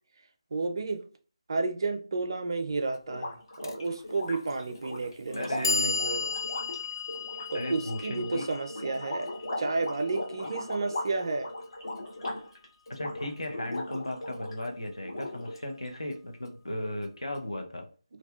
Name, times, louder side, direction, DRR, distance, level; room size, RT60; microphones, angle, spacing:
voice 1, 0.5-1.0 1.5-3.4 3.6-6.2 7.5-9.3 9.6-11.5, right 3 dB, 50° right, 0.4 m, -31 dB
sound 1, 3.1-14.7 15.0-15.9, left 1 dB, 60° left, 0.9 m, -38 dB
Clock, 3.6-3.8 4.7-4.8 5.3-11.4, left 4 dB, 45° left, 0.3 m, -35 dB
voice 2, 5.4-6.0 7.5-8.5 12.9-17.9, left 1 dB, 90° left, 0.7 m, -36 dB
2.7 x 2.3 x 2.3 m
figure-of-eight pair, 155°, 3 cm